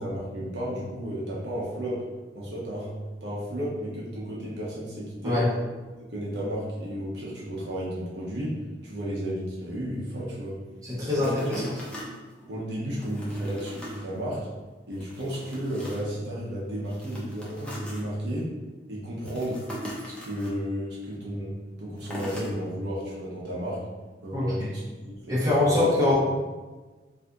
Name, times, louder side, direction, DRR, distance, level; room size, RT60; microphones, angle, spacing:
voice 1, 0.0-2.0 2.3-2.9 3.2-5.4 6.0-10.6 11.2-11.3 12.5-14.5 14.9-18.5 18.9-19.6 20.0-23.8 24.2-25.8 26.1-26.2, equal, 70° right, -6 dB, 0.8 m, -33 dB
voice 2, 10.8-11.6 24.3-24.7 25.3-26.1, left 2 dB, 20° right, -9 dB, 1.0 m, -23 dB
sound 1, 11.2-12.5 13.0-14.0 14.4-14.5 14.9-16.2 16.8-18.0 19.2-20.5 22.0-22.5 23.1-23.2, equal, 5° left, 0.5 m, -40 dB
2.6 x 2.5 x 3.4 m, 1.3 s
head